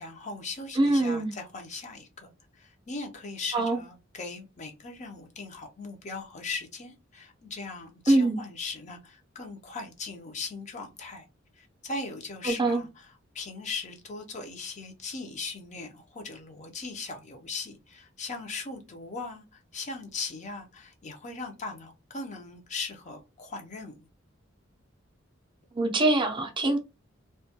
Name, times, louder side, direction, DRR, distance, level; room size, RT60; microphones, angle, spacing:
voice 1, 0.0-11.3 11.6-24.1, left 3 dB, 35° left, 0.5 m, -39 dB
voice 2, 0.8-1.3 3.5-3.8 8.1-8.4 12.5-12.8 25.8-26.8, right 2 dB, 25° right, 0.4 m, -23 dB
2.2 x 2.1 x 2.7 m
head